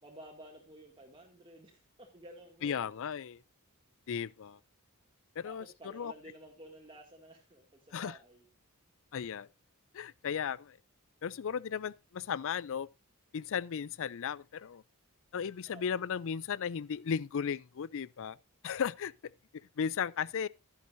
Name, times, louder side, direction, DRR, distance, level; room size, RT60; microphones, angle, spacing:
voice 1, 0.0-3.0 5.4-8.5 15.7-15.8, right 1 dB, 25° right, 2.2 m, -53 dB
voice 2, 2.6-3.4 4.1-4.6 5.4-6.1 7.9-8.2 9.1-9.5 9.9-10.8 11.2-12.9 13.3-14.8 15.3-18.4 18.6-19.1 19.8-20.5, left 7 dB, 60° left, 0.4 m, -35 dB
13.5 x 11.0 x 2.6 m
head